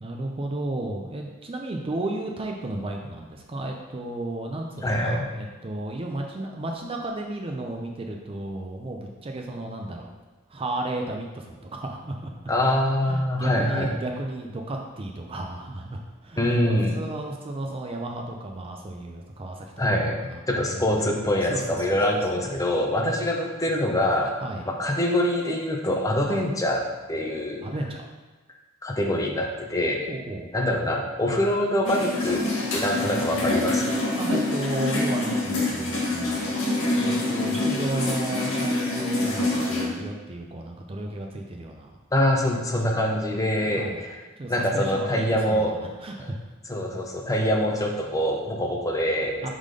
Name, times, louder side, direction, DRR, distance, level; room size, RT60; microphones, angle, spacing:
voice 1, 0.0-10.1 10.5-12.3 12.6-12.7 13.1-16.5 16.9-20.8 21.3-21.6 21.9-22.0 22.4-22.6 24.4-24.6 26.3-26.4 27.6-28.0 30.1-30.5 31.2-31.4 34.2-42.0 43.8-44.0 44.4-45.7 46.0-46.4 49.4-49.5, right 2 dB, 25° right, 2 dB, 0.4 m, -33 dB
voice 2, 4.8-5.3 12.5-14.0 16.4-17.0 19.8-24.4 24.7-26.8 27.1-27.6 28.8-30.0 30.5-32.4 32.7-34.0 42.1-44.2 44.5-45.7 46.2-46.3 46.7-49.5, left 1 dB, 15° left, 0 dB, 0.6 m, -24 dB
sound 1, 31.9-39.8, left 2 dB, 65° left, 1.6 m, -26 dB
4.9 x 3.7 x 5.1 m, 1.2 s
head